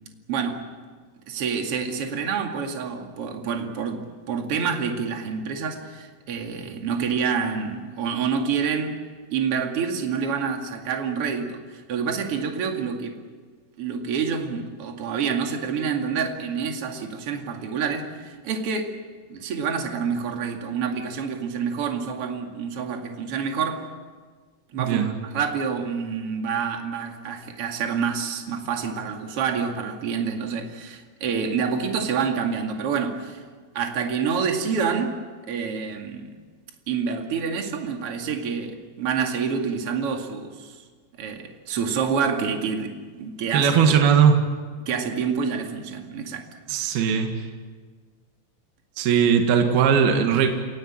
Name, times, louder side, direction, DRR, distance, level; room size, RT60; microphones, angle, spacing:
voice 1, 0.3-0.7 1.3-9.0 9.3-13.2 13.8-19.0 19.3-23.9 24.7-25.0 25.3-33.4 33.7-35.2 35.5-36.4 36.9-40.8 41.2-43.8 44.9-46.5, right 6 dB, 40° right, 2.2 m, -27 dB
voice 2, 24.8-25.1 43.5-44.4 46.7-47.3 49.0-50.5, right 7 dB, 60° right, 3.3 m, -19 dB
29.0 x 17.5 x 8.7 m
omnidirectional pair, 5.4 m